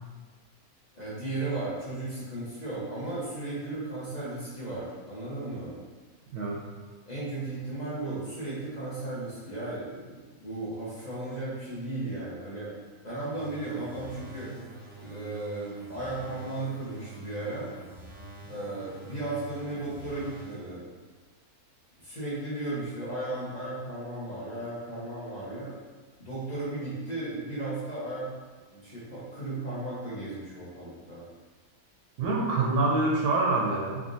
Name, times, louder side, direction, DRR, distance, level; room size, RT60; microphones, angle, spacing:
voice 1, 0.9-5.8 7.1-12.7 13.0-14.5 15.0-17.7 18.5-20.8 22.0-25.7 26.2-28.3 28.7-31.2, right 2 dB, 35° left, -9 dB, 0.9 m, -35 dB
sound 1, 13.3-20.7, right 3 dB, 40° right, 0.8 m, -46 dB
voice 2, 32.2-34.0, right 3 dB, 80° right, -2 dB, 1.1 m, -26 dB
3.6 x 3.5 x 2.5 m, 1.4 s
omnidirectional pair, 1.6 m